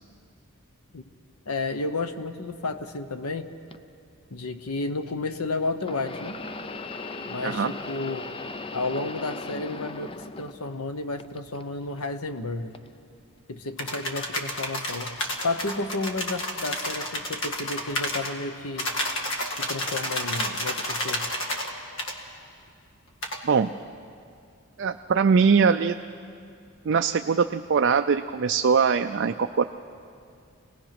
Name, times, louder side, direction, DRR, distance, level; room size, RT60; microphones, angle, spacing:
voice 1, 1.5-3.5 4.3-6.4 7.2-8.3 8.7-12.7 13.5-15.2 15.4-18.9 19.6-21.3, left 3 dB, 90° left, 9 dB, 1.1 m, -32 dB
sound 1, 3.7-3.8 5.8-10.9 11.2-12.0 12.7-12.9 13.9-14.0, left 3 dB, 25° left, 0.5 m, -38 dB
sound 2, 13.8-18.3 18.8-21.7 22.0-22.1 23.2-23.4, left 1 dB, 55° left, 2.0 m, -30 dB
voice 2, 24.8-25.9 26.9-29.7, right 5 dB, 50° right, 7 dB, 0.4 m, -22 dB
26.0 x 18.5 x 6.0 m, 2.4 s
head